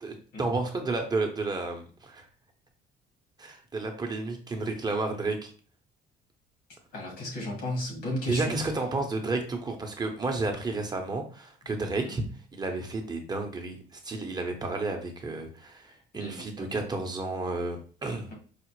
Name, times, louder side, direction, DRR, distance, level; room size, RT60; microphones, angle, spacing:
voice 1, 0.0-2.3 3.4-5.5 8.3-12.2 12.5-18.3, right 3 dB, 25° right, 4 dB, 0.7 m, -31 dB
voice 2, 6.9-8.5 12.0-12.1 16.1-16.7, left 1 dB, 80° left, -1 dB, 1.8 m, -34 dB
4.8 x 2.0 x 3.0 m, 0.39 s
cardioid pair, 110°, 17 cm